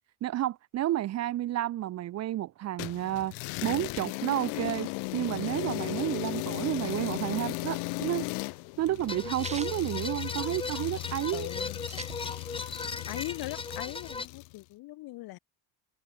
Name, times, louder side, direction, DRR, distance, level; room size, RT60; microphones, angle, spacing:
voice 1, 0.2-3.3 3.6-8.3 8.8-11.5, right 13 dB, 40° right, 0.9 m, -31 dB
sound 1, 2.8-14.6, left 35 dB, 75° left, 1.3 m, -36 dB
sound 2, 7.7-10.8 11.2-11.3 11.4-12.7 13.1-14.2, right 4 dB, 15° right, 2.2 m, -45 dB
sound 3, 9.1-14.3, left 3 dB, 10° left, 3.0 m, -38 dB
voice 2, 11.3-11.8 13.1-15.4, left 19 dB, 60° left, 3.8 m, -40 dB
cardioid pair, 145°, 42 cm